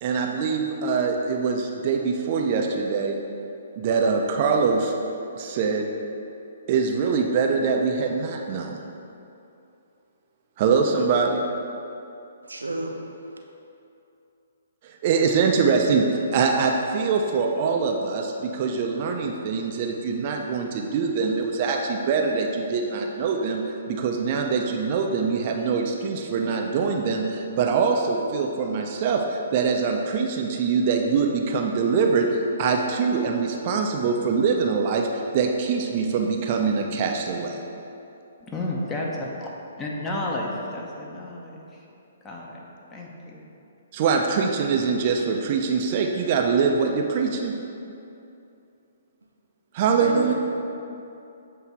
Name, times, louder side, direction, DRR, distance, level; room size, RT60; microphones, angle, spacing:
voice 1, 0.0-3.1 3.8-4.9 5.4-5.9 6.7-8.8 10.6-11.4 14.8-16.1 16.3-23.6 23.9-32.3 32.6-37.6 43.9-47.5 49.7-50.3, right 5 dB, 40° right, 2 dB, 0.5 m, -23 dB
voice 2, 12.4-13.0 50.0-50.3, right 2 dB, 90° right, 2 dB, 0.6 m, -29 dB
voice 3, 38.5-39.5 39.8-41.6 42.2-42.6 42.9-43.4, left 1 dB, 15° left, -3 dB, 0.9 m, -31 dB
7.9 x 2.7 x 4.5 m, 2.7 s
hypercardioid pair, 130°, 0 cm